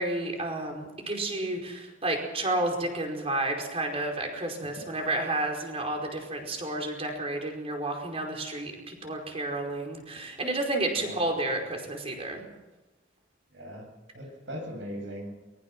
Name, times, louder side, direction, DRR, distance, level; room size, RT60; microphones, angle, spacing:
voice 1, 0.0-12.4, right 2 dB, 35° right, 2 dB, 4.9 m, -31 dB
voice 2, 11.0-11.3 13.5-13.9 14.1-15.3, equal, 80° right, 2 dB, 7.9 m, -39 dB
23.0 x 21.0 x 6.1 m, 1.1 s
head